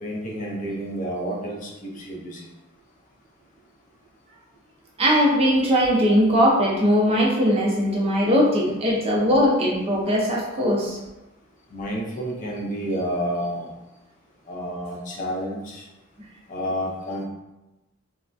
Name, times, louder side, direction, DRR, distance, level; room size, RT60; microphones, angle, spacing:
voice 1, 0.0-2.5 11.7-13.7 14.5-15.8 16.5-17.3, equal, 40° left, -2 dB, 0.5 m, -30 dB
voice 2, 5.0-11.0, equal, 30° right, -3 dB, 0.5 m, -20 dB
3.3 x 2.1 x 2.4 m, 0.99 s
head